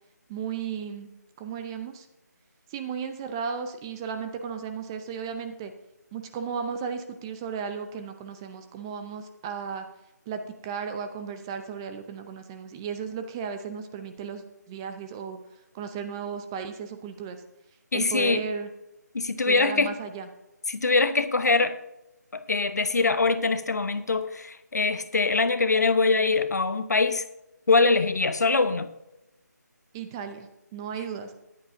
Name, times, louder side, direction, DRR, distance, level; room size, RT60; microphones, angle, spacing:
voice 1, 0.3-1.1 1.4-2.1 2.7-5.7 6.1-9.9 10.3-15.4 15.7-17.4 17.9-18.7 19.4-20.3 29.9-31.3, right 6 dB, 15° right, 7 dB, 0.5 m, -35 dB
voice 2, 17.9-18.4 19.1-19.9 20.7-21.8 22.3-27.2 27.7-28.9, left 3 dB, 65° left, 11 dB, 1.0 m, -23 dB
14.0 x 10.5 x 2.7 m, 0.90 s
figure-of-eight pair, 155°, 10 cm